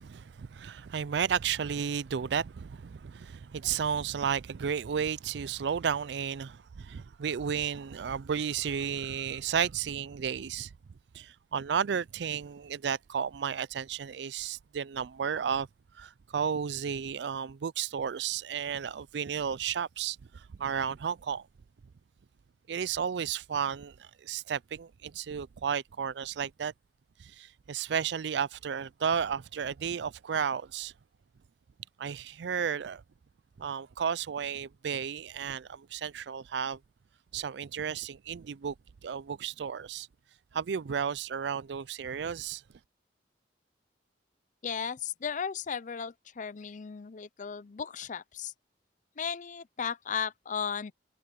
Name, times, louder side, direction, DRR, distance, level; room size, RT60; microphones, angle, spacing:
voice 1, 0.0-10.7 11.1-15.7 15.9-21.5 22.7-26.7 27.2-30.9 32.0-33.0 33.6-36.8 37.3-38.7 39.0-40.1 40.5-42.6, right 7 dB, 70° right, 0.4 m, -33 dB
voice 2, 44.6-48.5 49.2-50.9, left 7 dB, 45° left, 0.6 m, -35 dB
head